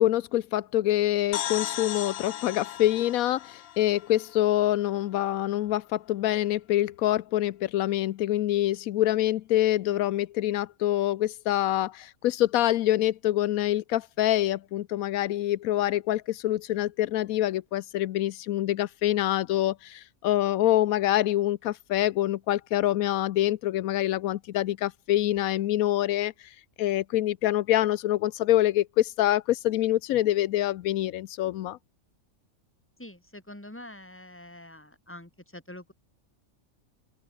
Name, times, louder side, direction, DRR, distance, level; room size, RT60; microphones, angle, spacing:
voice 1, 0.0-31.8, left 14 dB, 85° left, 1.1 m, -26 dB
sound 1, 1.3-5.0, left 12 dB, 65° left, 0.6 m, -36 dB
voice 2, 33.0-35.9, left 1 dB, 10° left, 2.9 m, -45 dB
open air
omnidirectional pair, 1.4 m